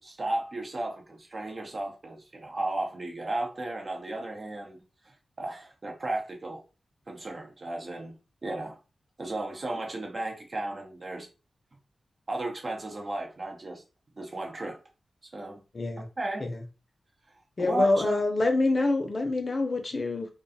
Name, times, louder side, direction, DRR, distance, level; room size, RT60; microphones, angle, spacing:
voice 1, 0.0-4.8 5.4-6.6 7.1-8.1 8.4-8.8 9.2-11.3 12.3-13.8 14.2-14.8 15.3-15.6 16.2-16.5 17.6-18.2, right 2 dB, 50° right, 0.7 m, -34 dB
voice 2, 15.7-16.1 16.4-16.6 17.6-20.3, left 2 dB, 50° left, 0.6 m, -26 dB
2.4 x 2.3 x 2.7 m
cardioid pair, 55°, 0 cm